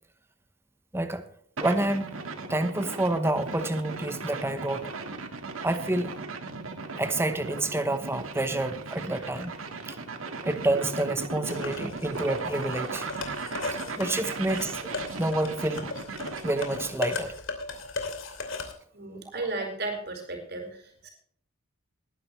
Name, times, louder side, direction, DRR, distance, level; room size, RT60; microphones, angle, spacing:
voice 1, 0.9-1.2 1.6-2.1 2.5-4.9 5.6-6.1 7.0-9.6 9.8-10.0 10.4-13.1 14.0-14.8 15.2-15.9 16.4-17.3 19.3-19.5, right 1 dB, 10° right, 9 dB, 0.9 m, -28 dB
sound 1, 1.6-17.0, right 3 dB, 80° right, 1.8 m, -37 dB
sound 2, 11.5-18.7, left 3 dB, 65° left, 2.8 m, -37 dB
voice 2, 18.9-21.1, right 2 dB, 50° right, 3 dB, 4.6 m, -34 dB
20.5 x 10.5 x 3.2 m, 0.62 s
head